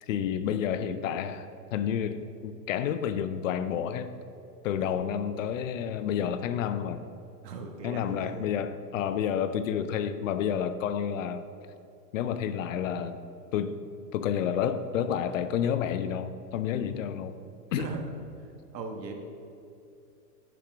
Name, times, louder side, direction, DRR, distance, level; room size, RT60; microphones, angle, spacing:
voice 1, 0.1-4.1 4.6-7.0 7.8-11.4 12.1-13.2 13.5-13.8 14.1-17.3 17.7-17.9, left 8 dB, 55° left, 11 dB, 0.5 m, -30 dB
voice 2, 7.4-8.4 17.7-18.0 18.7-19.1, right 4 dB, 80° right, 4 dB, 1.3 m, -38 dB
7.1 x 5.8 x 4.9 m, 2.6 s
hypercardioid pair, 135°, 49 cm